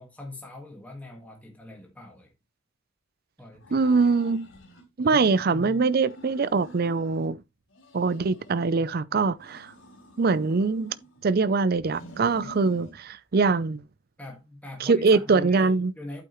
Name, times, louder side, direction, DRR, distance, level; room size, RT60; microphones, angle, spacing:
voice 1, 0.0-2.3 3.4-3.9 5.0-5.8 12.4-12.5 14.2-16.2, left 1 dB, 5° left, 1.7 m, -42 dB
sound 1, 3.6-4.8 5.2-7.3 7.7-8.9 9.4-11.3 11.8-13.0, left 1 dB, 65° left, 3.7 m, -48 dB
voice 2, 3.7-4.5 5.0-7.4 7.9-9.7 10.2-10.9 11.2-13.8 14.8-15.9, right 4 dB, 45° right, 0.4 m, -23 dB
8.4 x 8.4 x 3.0 m
head